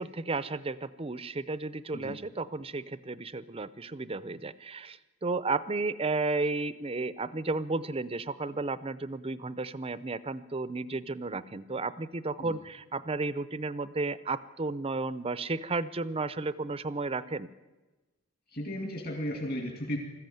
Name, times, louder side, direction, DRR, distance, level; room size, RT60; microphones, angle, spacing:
voice 1, 0.0-17.5, right 3 dB, 25° right, 16 dB, 0.6 m, -33 dB
voice 2, 18.5-20.0, equal, 45° left, 2 dB, 2.6 m, -35 dB
20.0 x 14.5 x 9.3 m, 1.2 s
head